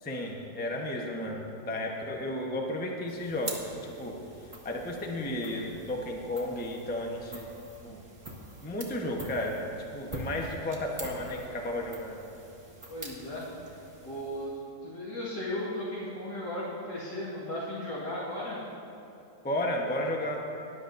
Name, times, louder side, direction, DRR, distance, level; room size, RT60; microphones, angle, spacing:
voice 1, 0.0-4.2 4.6-7.5 7.8-8.0 8.6-12.2 19.4-20.4, left 1 dB, 10° left, 0 dB, 0.6 m, -33 dB
sound 1, 3.1-14.8, right 1 dB, 15° right, 1.8 m, -45 dB
voice 2, 12.9-18.6, left 1 dB, 75° left, -8 dB, 2.5 m, -36 dB
19.5 x 11.0 x 2.6 m, 2.8 s
omnidirectional pair, 2.0 m